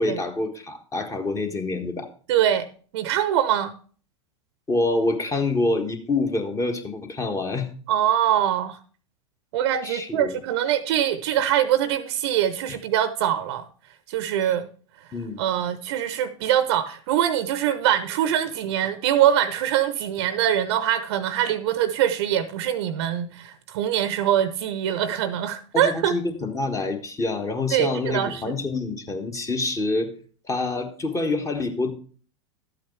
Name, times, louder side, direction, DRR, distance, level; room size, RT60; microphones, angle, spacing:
voice 1, 0.0-2.1 4.7-7.7 9.8-10.3 14.4-14.5 15.1-15.4 25.7-30.1 30.4-31.9, left 2 dB, 20° left, 1.5 m, -26 dB
voice 2, 2.3-2.6 2.9-3.7 7.9-8.8 9.5-13.7 14.1-14.7 15.4-26.1 27.7-28.5, right 10 dB, 55° right, 0.8 m, -23 dB
12.0 x 8.5 x 3.2 m
figure-of-eight pair, 90°, 16 cm